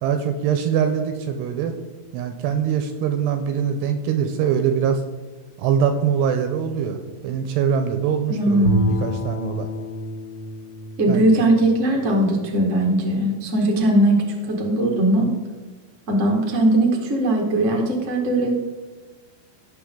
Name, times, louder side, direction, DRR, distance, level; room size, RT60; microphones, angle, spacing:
voice 1, 0.0-1.8 2.1-5.0 5.6-7.0 7.2-9.7 11.1-11.3, right 7 dB, 80° right, 7 dB, 2.7 m, -23 dB
voice 2, 8.3-9.0 11.0-15.3 16.1-18.6, right 1 dB, 50° right, -1 dB, 0.8 m, -19 dB
Bowed string instrument, 8.6-12.9, equal, 45° left, 4.2 m, -29 dB
18.0 x 6.7 x 3.8 m, 1.3 s
omnidirectional pair, 5.3 m